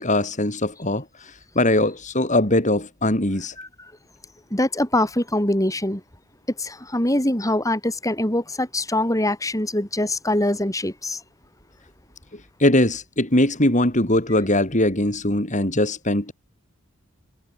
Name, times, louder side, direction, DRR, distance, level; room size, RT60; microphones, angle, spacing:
voice 1, 0.0-3.6 12.6-16.3, left 1 dB, 40° left, 6.9 m, -21 dB
voice 2, 4.5-6.0 6.6-11.2, left 1 dB, 15° left, 5.5 m, -23 dB
head